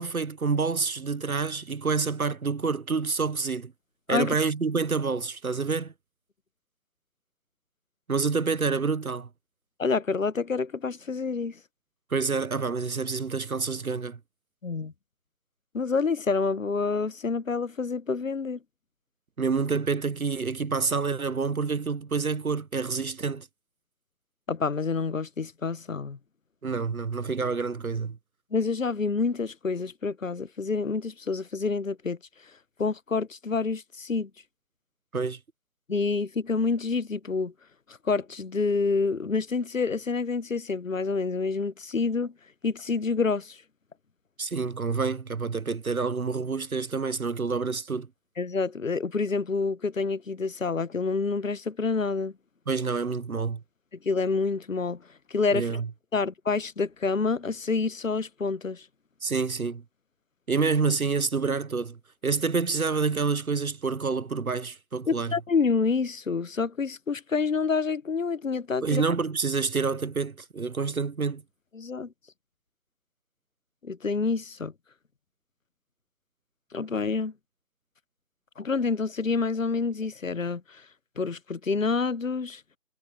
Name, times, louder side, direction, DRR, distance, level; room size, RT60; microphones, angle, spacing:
voice 1, 0.0-3.7 4.1-5.9 8.1-9.3 12.1-14.2 19.4-23.5 26.6-28.2 35.1-35.4 44.4-48.1 52.7-53.6 55.5-55.9 59.2-59.8 60.5-62.0 62.2-65.3 68.8-71.4, right 4 dB, 70° right, 0.9 m, -28 dB
voice 2, 9.8-11.6 14.6-14.9 15.7-18.6 24.5-26.2 28.5-32.2 32.8-34.3 35.9-37.5 38.0-42.3 42.6-43.6 48.4-52.3 54.0-55.0 55.3-55.8 56.1-58.8 65.1-69.0 71.7-72.1 73.8-74.7 76.7-77.3 78.6-80.8 81.2-82.6, left 4 dB, 60° left, 0.9 m, -28 dB
figure-of-eight pair, 160°, 45 cm